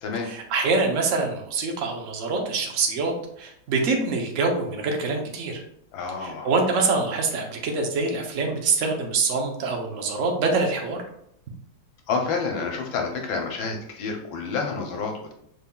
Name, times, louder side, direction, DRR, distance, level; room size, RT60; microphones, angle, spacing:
voice 1, 0.2-5.6 6.2-11.0, right 3 dB, 65° right, 2 dB, 0.8 m, -25 dB
voice 2, 5.9-6.5 12.1-15.3, left 4 dB, 75° left, 2 dB, 1.5 m, -29 dB
5.4 x 4.0 x 2.3 m, 0.74 s
omnidirectional pair, 2.3 m